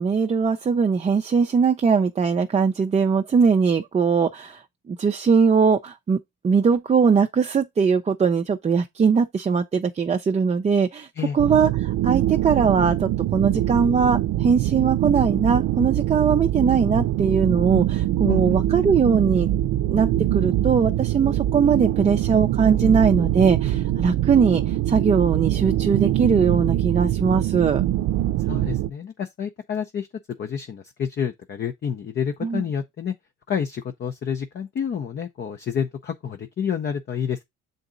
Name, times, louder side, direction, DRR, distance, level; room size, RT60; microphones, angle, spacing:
voice 1, 0.0-4.6 4.9-6.2 6.4-11.1 11.3-19.5 19.9-27.8 32.4-32.6, right 6 dB, 25° right, 0.5 m, -20 dB
sound 1, 11.4-28.9, right 13 dB, 75° right, 0.5 m, -23 dB
voice 2, 18.3-18.6 28.4-30.1 30.4-33.1 33.5-37.4, left 7 dB, 35° left, 0.6 m, -29 dB
7.1 x 4.0 x 3.8 m
cardioid pair, 125°, 30 cm